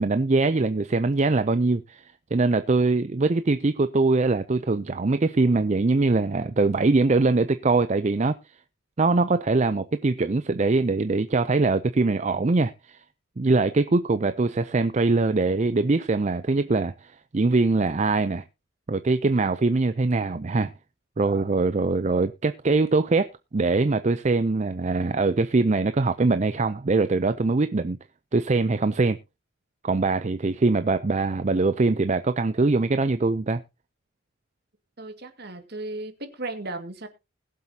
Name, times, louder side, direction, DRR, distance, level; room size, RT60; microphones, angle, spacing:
voice 1, 0.0-8.4 9.0-13.0 13.4-18.4 18.9-20.7 21.2-23.3 23.5-28.0 28.3-29.2 29.8-33.6, right 3 dB, 35° right, 0.5 m, -22 dB
voice 2, 35.0-37.1, right 2 dB, 50° right, 2.0 m, -35 dB
20.5 x 7.6 x 2.8 m
head